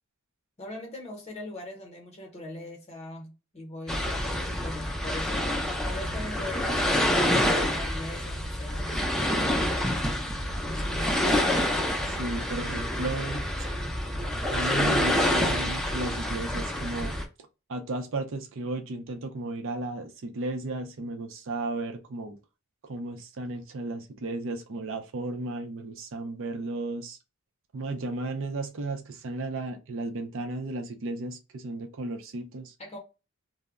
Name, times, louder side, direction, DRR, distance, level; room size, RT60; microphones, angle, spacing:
voice 1, 0.6-5.4 5.9-9.6 10.6-11.3 32.8-33.0, left 1 dB, 30° left, 0.8 m, -41 dB
sound 1, 3.9-17.2, left 1 dB, 5° left, 0.5 m, -27 dB
voice 2, 12.0-13.5 14.5-17.2 17.7-22.4 22.8-27.2 27.7-32.7, right 2 dB, 65° right, 0.5 m, -34 dB
2.2 x 2.0 x 3.5 m
head